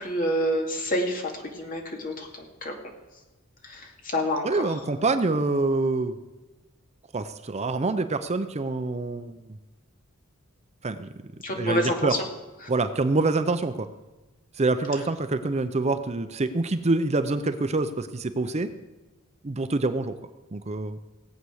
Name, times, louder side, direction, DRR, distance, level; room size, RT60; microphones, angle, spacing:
voice 1, 0.0-2.7 3.6-4.8 11.4-12.3 12.6-12.7, equal, 40° left, 2 dB, 2.3 m, -28 dB
voice 2, 4.4-6.1 7.1-9.4 10.8-11.1 11.6-12.2 12.7-13.9 14.6-18.7 19.4-20.1 20.5-21.0, right 3 dB, 30° right, 10 dB, 0.6 m, -26 dB
18.5 x 8.2 x 6.4 m, 1.1 s
head